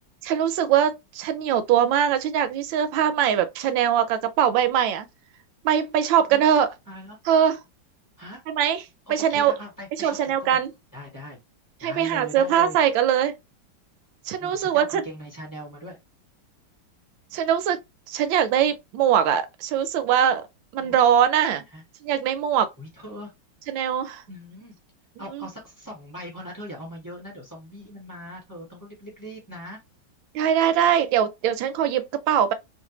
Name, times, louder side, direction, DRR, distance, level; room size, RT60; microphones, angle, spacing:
voice 1, 0.2-5.1 5.6-6.7 7.3-7.6 8.5-8.8 9.1-9.5 10.0-10.7 11.8-13.4 14.3-15.0 17.3-17.8 18.1-20.5 20.7-21.6 22.0-22.7 23.7-24.2 25.3-25.5 30.3-32.5, right 9 dB, 80° right, 1.3 m, -22 dB
voice 2, 6.9-7.2 8.2-8.4 9.1-10.6 10.9-11.4 11.8-12.8 14.4-16.0 18.3-18.4 20.8-20.9 21.7-21.8 22.8-23.3 24.3-24.7 25.2-29.8, equal, 15° left, 0.7 m, -40 dB
3.2 x 2.1 x 2.9 m
omnidirectional pair, 2.1 m